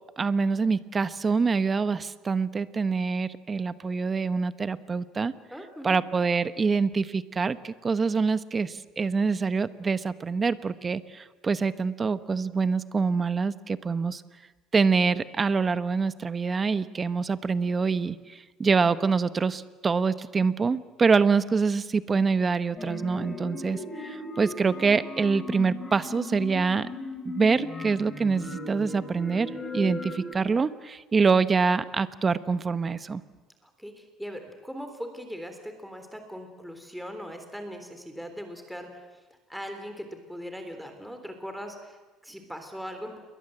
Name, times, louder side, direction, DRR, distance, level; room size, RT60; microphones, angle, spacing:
voice 1, 0.2-5.3 5.8-14.2 14.7-26.9 27.2-33.2, right 5 dB, 25° right, 13 dB, 1.0 m, -25 dB
voice 2, 5.5-6.0 33.6-39.1 39.5-43.2, equal, ahead, 5 dB, 3.6 m, -40 dB
sound 1, 22.8-30.3, left 2 dB, 20° left, 3.7 m, -37 dB
28.5 x 22.5 x 7.9 m, 1.2 s
cardioid pair, 125°, 0 cm